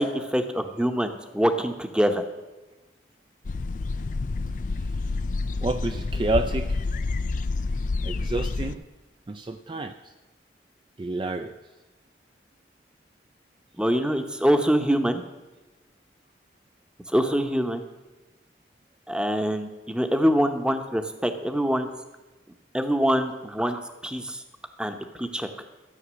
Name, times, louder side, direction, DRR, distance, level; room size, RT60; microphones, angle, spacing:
voice 1, 0.0-2.2 13.8-15.2 17.1-17.8 19.1-21.9 22.7-24.4 24.8-25.5, equal, 5° right, 7 dB, 0.8 m, -24 dB
sound 1, 3.4-8.7, left 3 dB, 45° left, 0.4 m, -28 dB
voice 2, 5.6-6.8 8.0-8.8 9.3-10.1 11.0-11.6, right 2 dB, 30° right, 7 dB, 0.4 m, -29 dB
13.0 x 8.6 x 6.2 m, 1.2 s
head